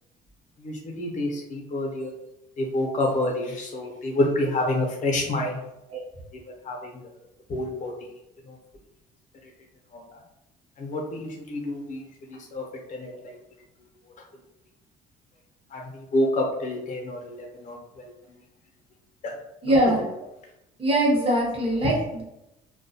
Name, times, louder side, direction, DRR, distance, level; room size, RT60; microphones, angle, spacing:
voice 1, 0.6-2.1 2.6-5.6 6.3-6.9 7.5-7.9 8.5-8.6 9.9-10.0 10.8-12.0 12.3-12.6 12.9-13.4 15.7-18.4 19.2-19.3 19.6-19.7, left 1 dB, 50° left, 1 dB, 0.7 m, -28 dB
voice 2, 19.6-20.1 20.8-22.2, right 1 dB, 35° right, -3 dB, 0.9 m, -22 dB
2.3 x 2.2 x 2.7 m, 0.88 s
cardioid pair, 110°, 17 cm